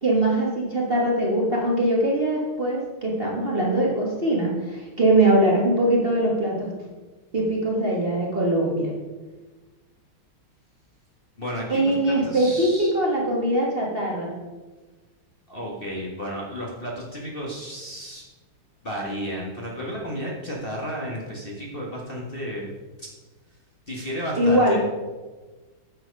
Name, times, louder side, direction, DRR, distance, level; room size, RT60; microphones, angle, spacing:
voice 1, 0.0-6.7 7.3-8.9 11.7-14.3 24.4-24.8, right 1 dB, 30° right, -3 dB, 1.7 m, -22 dB
voice 2, 11.4-11.9 12.2-12.9 15.5-18.2 18.8-22.7 23.0-23.1 23.9-24.8, equal, 30° left, -3 dB, 1.6 m, -32 dB
9.3 x 7.6 x 5.3 m, 1.3 s
omnidirectional pair, 2.3 m